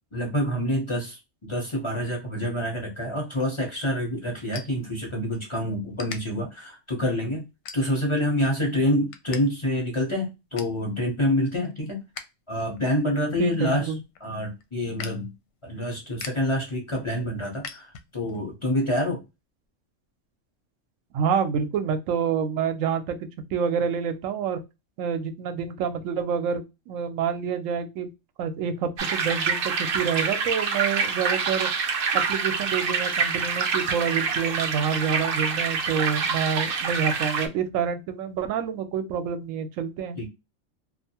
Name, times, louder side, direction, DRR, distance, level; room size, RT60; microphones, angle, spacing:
voice 1, 0.1-7.4 7.7-12.0 12.5-13.9 14.2-15.3 15.6-19.2 40.2-40.3, left 1 dB, 30° left, 0.6 m, -27 dB
sound 1, 3.4-5.5 5.9-6.2 6.8-7.0 7.6-8.2 8.6-9.4 9.7-9.8 10.2-10.8 11.3-12.4 12.7-18.4, left 6 dB, 70° left, 0.8 m, -43 dB
voice 2, 13.4-14.0 21.1-23.2 23.5-24.6 25.0-28.1 28.4-31.7 32.1-40.2, right 7 dB, 85° right, 1.0 m, -27 dB
sound 2, 29.0-37.5, right 5 dB, 60° right, 0.6 m, -26 dB
2.6 x 2.3 x 2.7 m
omnidirectional pair, 1.3 m